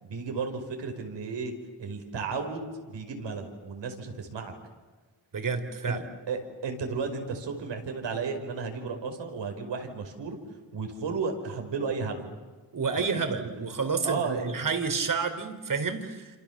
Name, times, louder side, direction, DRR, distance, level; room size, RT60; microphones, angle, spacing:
voice 1, 0.0-1.5 1.8-4.5 5.9-6.0 6.3-10.4 10.7-12.3 12.9-13.2 14.0-14.5, right 4 dB, 75° right, 4 dB, 5.4 m, -33 dB
voice 2, 5.3-6.0 12.7-16.4, right 5 dB, 45° right, 8 dB, 3.8 m, -29 dB
28.0 x 27.5 x 7.4 m, 1.4 s
cardioid pair, 75°, 43 cm